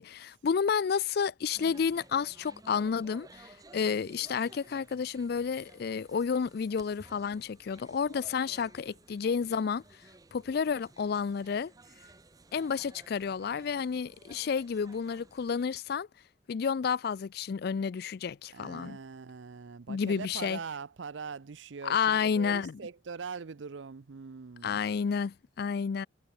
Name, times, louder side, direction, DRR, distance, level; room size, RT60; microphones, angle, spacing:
voice 1, 0.0-9.8 10.3-11.7 12.5-16.1 16.5-19.0 19.9-20.6 21.8-22.8 24.6-26.1, left 6 dB, 55° left, 0.4 m, -31 dB
sound 1, 1.5-15.7, right 2 dB, 20° right, 0.6 m, -56 dB
voice 2, 18.5-24.8, right 5 dB, 70° right, 0.6 m, -42 dB
head